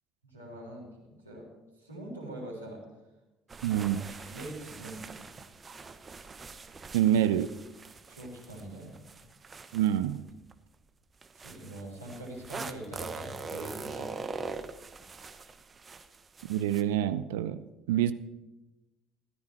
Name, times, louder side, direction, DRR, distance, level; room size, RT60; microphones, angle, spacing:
voice 1, 0.2-1.5 1.8-2.8 3.6-3.9 4.3-5.1 8.1-9.3 11.4-14.1, right 1 dB, 90° left, -3 dB, 3.5 m, -43 dB
sound 1, 3.5-10.5 11.2-16.8, right 4 dB, 30° right, 1.0 m, -43 dB
voice 2, 3.6-4.0 6.9-7.5 9.7-10.2 16.5-18.1, right 11 dB, 70° right, 14 dB, 0.5 m, -27 dB
15.5 x 13.0 x 4.4 m, 1.0 s
figure-of-eight pair, 55°, 0 cm